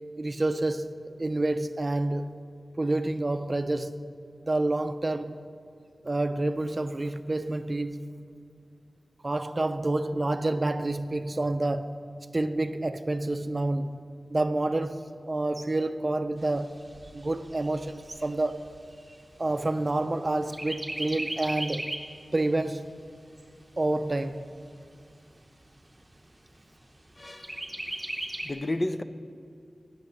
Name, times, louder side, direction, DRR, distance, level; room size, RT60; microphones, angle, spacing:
voice 1, 0.2-0.9 1.2-2.3 2.8-4.0 4.4-5.4 6.0-8.0 9.2-12.0 12.3-14.0 14.3-16.7 17.1-18.6 19.4-21.9 22.3-22.9 23.8-24.5, right 2 dB, 35° right, 10 dB, 0.5 m, -28 dB
Chirp tweet, 16.4-20.1 20.5-22.2 22.6-22.7 23.1-24.1 24.7-24.8 25.1-25.2 25.7-26.2 27.4-28.5, right 1 dB, 20° right, 0.9 m, -37 dB
voice 2, 27.2-27.6 28.4-29.0, left 1 dB, 30° left, 10 dB, 0.5 m, -31 dB
9.6 x 7.2 x 9.0 m, 2.4 s
wide cardioid pair, 80°, 0 cm